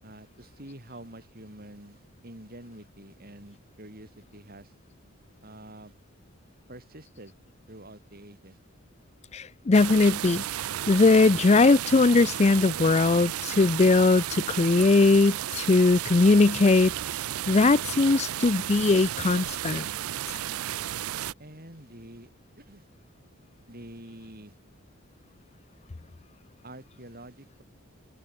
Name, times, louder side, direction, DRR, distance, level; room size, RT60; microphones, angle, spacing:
voice 1, 0.0-4.7 5.4-5.9 6.7-7.3 7.7-8.6 21.4-22.3 22.6-22.9 23.7-24.6 26.6-27.6, right 1 dB, 45° right, 8.0 m, -47 dB
voice 2, 9.3-10.4 10.9-16.9 17.5-19.9 20.3-20.4, left 3 dB, 30° left, 0.5 m, -20 dB
sound 1, 9.7-21.3, right 12 dB, 85° right, 0.4 m, -33 dB
head